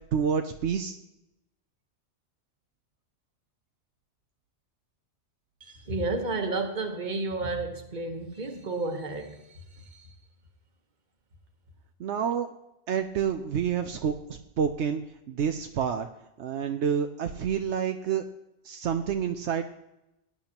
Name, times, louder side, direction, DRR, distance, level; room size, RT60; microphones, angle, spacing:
voice 1, 0.1-1.0 12.0-12.5 12.9-15.0 15.3-16.1 16.4-18.2 18.6-19.6, right 7 dB, 75° right, 6 dB, 0.9 m, -28 dB
voice 2, 5.6-10.0, right 3 dB, 40° right, 6 dB, 1.3 m, -32 dB
18.0 x 10.0 x 3.0 m, 0.89 s
omnidirectional pair, 1.2 m